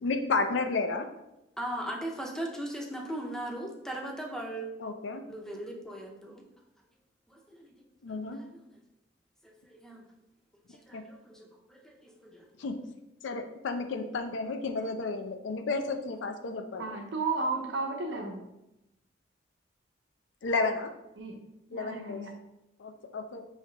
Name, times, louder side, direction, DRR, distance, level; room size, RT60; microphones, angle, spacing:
voice 1, 0.0-1.1 4.8-5.2 8.0-8.4 10.9-11.0 12.6-12.8 13.2-16.9 20.4-20.9 21.7-22.2 22.8-23.4, left 3 dB, 85° left, 7 dB, 0.4 m, -32 dB
voice 2, 1.6-4.7 5.1-6.4 7.3-7.7 8.3-8.7 9.4-10.0 10.7-12.5, right 1 dB, 5° left, 0 dB, 0.5 m, -39 dB
voice 3, 16.8-18.4 21.2-21.4 21.7-22.3, right 3 dB, 80° right, 2 dB, 0.7 m, -33 dB
3.2 x 2.8 x 4.3 m, 0.91 s
head